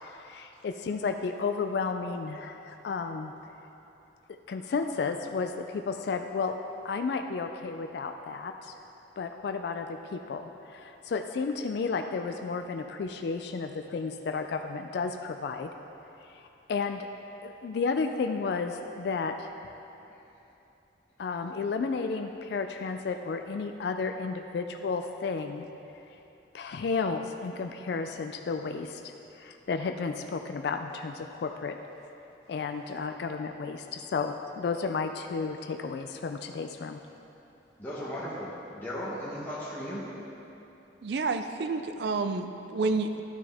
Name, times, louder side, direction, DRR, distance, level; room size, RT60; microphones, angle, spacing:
voice 1, 0.0-3.3 4.3-6.6 6.8-8.7 9.2-15.7 16.2-16.4 16.7-17.1 17.4-19.5 21.2-25.7 26.5-29.0 29.3-31.8 32.5-37.0, left 4 dB, 60° left, 6 dB, 0.3 m, -32 dB
voice 2, 37.8-40.0, equal, 10° left, -8 dB, 1.0 m, -36 dB
voice 3, 41.0-43.2, right 3 dB, 60° right, 8 dB, 0.4 m, -29 dB
11.5 x 6.1 x 3.5 m, 3.0 s
head